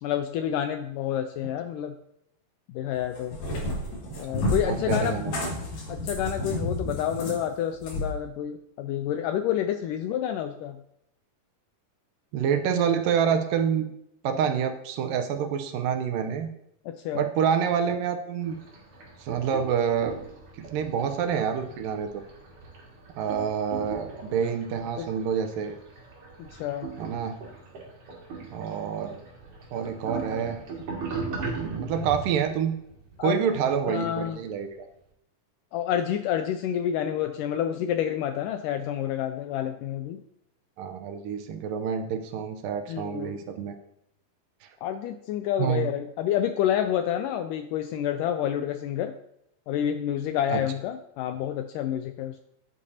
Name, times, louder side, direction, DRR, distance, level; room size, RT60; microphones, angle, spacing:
voice 1, 0.0-2.0 2.7-3.4 4.2-5.3 5.9-10.8 16.9-17.2 25.0-25.1 26.4-26.9 33.2-33.4 33.9-34.4 35.7-40.2 42.9-43.5 44.8-49.1 49.7-52.5, left 10 dB, 85° left, 8 dB, 1.9 m, -29 dB
Cat, 3.0-8.1, left 1 dB, 55° left, 3.2 m, -31 dB
voice 2, 4.7-5.5 12.3-13.9 14.2-16.5 17.1-18.6 19.2-20.2 20.7-22.2 23.2-25.8 27.0-27.4 28.5-29.2 29.7-30.6 31.6-32.8 33.2-34.9 40.8-43.7 45.6-45.9 50.5-50.6, right 7 dB, 80° right, 8 dB, 2.3 m, -27 dB
sound 1, 18.4-34.5, right 4 dB, 55° right, 3.2 m, -39 dB
13.0 x 8.6 x 2.8 m, 0.78 s
omnidirectional pair, 4.2 m